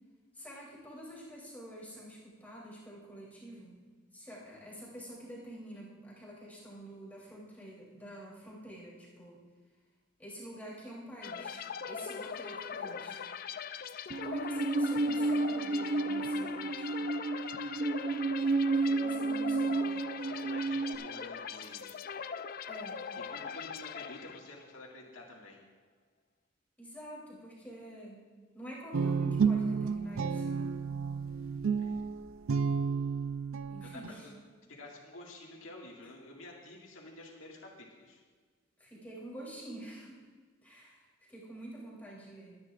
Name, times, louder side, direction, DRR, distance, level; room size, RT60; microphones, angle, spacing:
voice 1, 0.3-3.8 4.1-9.4 10.2-13.2 14.2-17.1 18.8-20.0 22.7-23.0 26.8-28.3 28.5-30.8 33.7-34.3 38.8-40.3 40.6-42.6, right 1 dB, 10° left, -5 dB, 3.1 m, -47 dB
sound 1, 11.2-24.8, left 6 dB, 45° left, 0.4 m, -41 dB
Musical instrument, 14.1-20.9, right 3 dB, 45° right, 0.7 m, -31 dB
voice 2, 20.3-22.0 23.3-25.6 31.8-32.0 33.6-34.3 34.7-38.2, left 2 dB, 80° left, -2 dB, 2.0 m, -50 dB
Guitar, 28.9-34.1, right 5 dB, 90° right, 0.5 m, -31 dB
23.5 x 9.5 x 2.5 m, 1.5 s
head